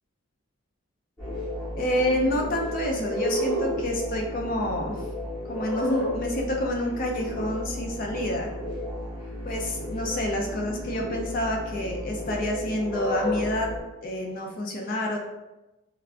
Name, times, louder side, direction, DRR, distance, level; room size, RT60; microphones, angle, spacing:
sound 1, 1.2-13.8, left 1 dB, 15° left, 1.0 m, -32 dB
voice 1, 1.8-5.0 5.4-8.5 9.4-13.7 14.0-15.2, left 1 dB, 40° left, 1 dB, 0.4 m, -28 dB
3.2 x 2.4 x 2.4 m, 1.0 s
head